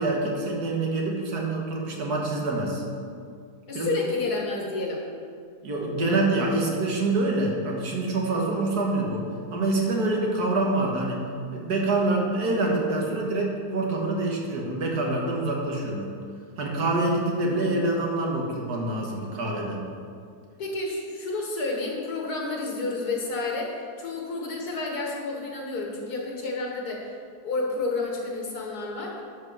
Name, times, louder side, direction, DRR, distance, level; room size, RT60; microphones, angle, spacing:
voice 1, 0.0-2.8 3.7-3.9 5.6-9.3 9.5-11.2 11.5-16.1 16.6-19.8, right 2 dB, 75° right, -1 dB, 2.0 m, -26 dB
voice 2, 3.7-5.0 20.6-27.1 27.4-29.2, left 3 dB, 70° left, -1 dB, 2.0 m, -30 dB
11.0 x 5.0 x 6.1 m, 2.3 s
omnidirectional pair, 1.7 m